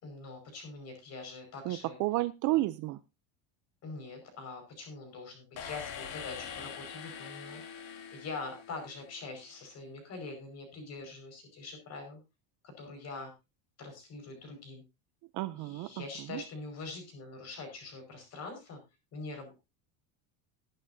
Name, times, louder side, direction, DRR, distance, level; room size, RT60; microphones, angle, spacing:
voice 1, 0.0-2.0 3.8-12.2 12.6-13.3 13.8-14.8 15.5-18.8 19.1-19.5, left 3 dB, 35° left, 5 dB, 5.2 m, -44 dB
voice 2, 1.7-3.0 15.3-16.0 16.3-16.4, right 18 dB, 45° right, 14 dB, 0.5 m, -31 dB
sound 1, 5.6-9.4, left 7 dB, 60° left, 2.5 m, -44 dB
20.0 x 8.9 x 2.7 m, 0.25 s
cardioid pair, 165°, 44 cm